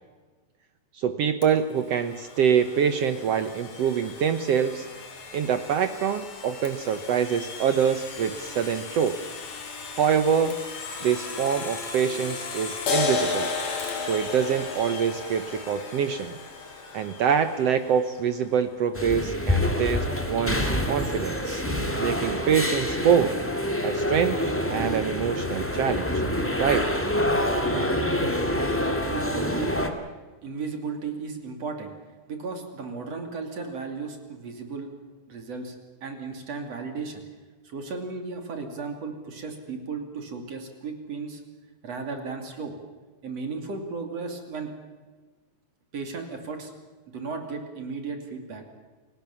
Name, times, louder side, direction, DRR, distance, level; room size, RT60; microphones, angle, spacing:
voice 1, 0.9-4.9 5.3-9.2 9.9-10.6 11.0-13.5 14.1-16.4 16.9-21.6 22.0-23.4 23.8-24.4 24.7-26.2 26.6-26.8, right 7 dB, 80° right, 10 dB, 1.4 m, -25 dB
Domestic sounds home sounds, 1.4-18.2, left 5 dB, 50° left, 4.0 m, -40 dB
sound 1, 12.9-19.8, left 4 dB, 80° left, 6.1 m, -33 dB
sound 2, 18.9-29.9, left 1 dB, 5° left, 1.0 m, -26 dB
voice 2, 28.5-29.8 30.4-31.9 32.3-34.9 35.3-35.8 36.0-37.2 37.6-41.4 41.8-42.7 43.2-44.7 45.9-46.7 47.1-48.6, right 4 dB, 45° right, 5 dB, 3.6 m, -35 dB
29.0 x 18.0 x 7.2 m, 1.4 s
omnidirectional pair, 4.2 m